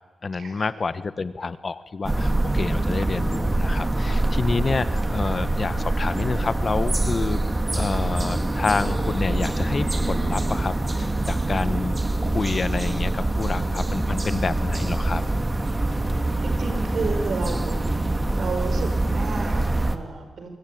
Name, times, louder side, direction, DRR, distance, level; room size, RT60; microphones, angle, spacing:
voice 1, 0.2-7.4 7.7-11.9 12.2-15.2, left 4 dB, 45° left, 14 dB, 1.3 m, -28 dB
sound 1, 2.0-20.0, right 2 dB, 20° right, 2.1 m, -24 dB
voice 2, 16.4-17.8 18.3-20.5, right 4 dB, 65° right, 6 dB, 5.7 m, -32 dB
25.5 x 23.0 x 9.5 m, 1.4 s
cardioid pair, 80°, 0 cm